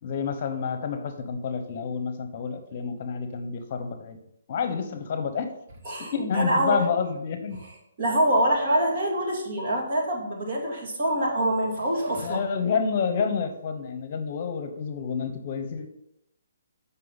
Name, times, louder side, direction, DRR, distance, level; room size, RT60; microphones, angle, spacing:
voice 1, 0.0-4.2 4.5-5.5 5.9-7.6 12.2-15.9, left 6 dB, 45° left, 7 dB, 0.9 m, -29 dB
voice 2, 5.8-6.8 8.0-12.4, right 1 dB, 40° right, -2 dB, 2.4 m, -25 dB
7.5 x 5.5 x 4.1 m, 0.77 s
hypercardioid pair, 155°, 0 cm